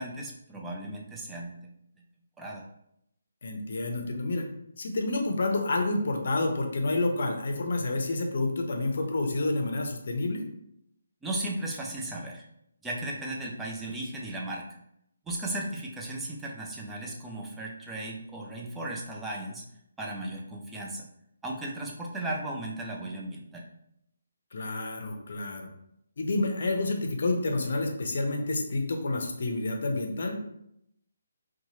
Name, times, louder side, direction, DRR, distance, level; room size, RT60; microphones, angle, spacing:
voice 1, 0.0-1.6 2.4-2.6 11.2-12.4 12.8-14.7 15.3-19.7 20.0-21.1 21.4-23.6, right 1 dB, 5° right, -2 dB, 0.4 m, -36 dB
voice 2, 3.4-4.5 4.8-10.4 24.5-25.7 26.2-30.4, left 2 dB, 60° left, 3 dB, 0.6 m, -29 dB
2.9 x 2.3 x 2.8 m, 0.76 s
hypercardioid pair, 155°, 0 cm